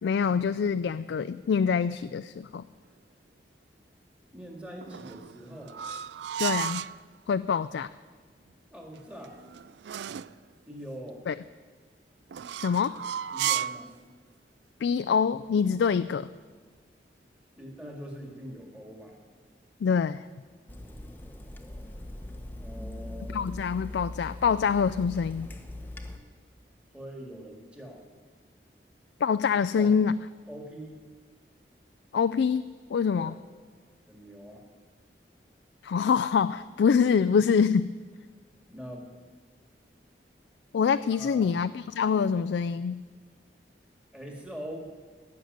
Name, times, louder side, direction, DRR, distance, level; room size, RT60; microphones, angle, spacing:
voice 1, 0.0-2.6 6.4-6.8 7.3-7.9 11.3-11.4 12.6-13.0 14.8-16.3 19.8-20.3 23.3-25.5 29.2-30.2 32.1-33.3 35.8-37.9 40.7-43.0, left 6 dB, 85° left, 13 dB, 0.3 m, -25 dB
voice 2, 4.3-5.8 8.7-9.4 10.7-11.2 13.3-13.9 17.6-19.2 22.6-23.4 26.9-28.0 29.8-29.9 30.5-31.0 33.2-33.4 34.1-34.6 38.7-39.1 41.1-41.5 44.1-44.9, equal, 5° right, 0 dB, 2.1 m, -43 dB
sound 1, 4.8-7.0 9.0-10.4 12.3-13.9, right 10 dB, 80° right, 0.3 m, -33 dB
Water tap faucet / Sink (filling or washing), 20.7-26.2, left 1 dB, 10° left, 0.8 m, -41 dB
16.5 x 6.6 x 9.4 m, 1.5 s
head